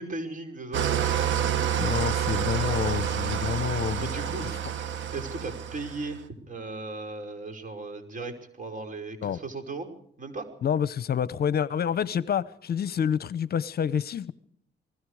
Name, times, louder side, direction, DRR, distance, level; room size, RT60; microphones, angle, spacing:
voice 1, 0.0-1.4 4.0-4.5 5.1-9.9 10.2-10.4, right 3 dB, 40° right, 5.4 m, -37 dB
Engine starting / Idling, 0.7-6.2, right 9 dB, 75° right, 1.8 m, -28 dB
voice 2, 1.8-4.1 9.2-9.4 10.6-14.3, left 8 dB, 50° left, 0.8 m, -28 dB
28.5 x 20.0 x 4.9 m
cardioid pair, 90°, 20 cm